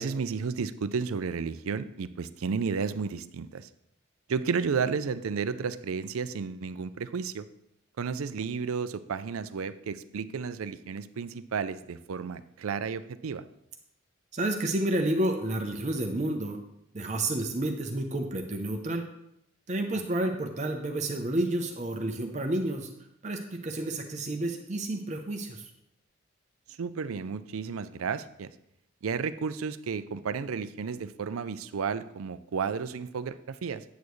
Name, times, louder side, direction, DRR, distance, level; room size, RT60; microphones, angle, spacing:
voice 1, 0.0-3.7 4.3-7.5 8.0-13.4 19.9-20.0 26.7-28.5 29.0-33.8, right 5 dB, 85° right, 14 dB, 0.4 m, -32 dB
voice 2, 14.3-16.6 16.9-19.0 19.7-22.9 23.2-25.7, right 1 dB, 35° right, 4 dB, 0.7 m, -30 dB
8.5 x 8.1 x 3.1 m, 0.79 s
head